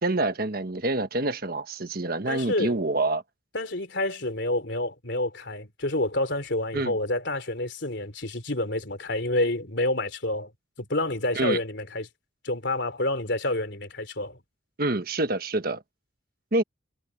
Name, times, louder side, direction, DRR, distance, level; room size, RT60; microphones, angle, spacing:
voice 1, 0.0-3.2 6.7-7.0 11.3-11.6 14.8-15.8 16.5-16.6, right 2 dB, 50° right, 1.4 m, -26 dB
voice 2, 2.3-2.8 3.5-10.5 10.8-12.1 12.4-14.4, left 1 dB, 60° left, 3.9 m, -28 dB
head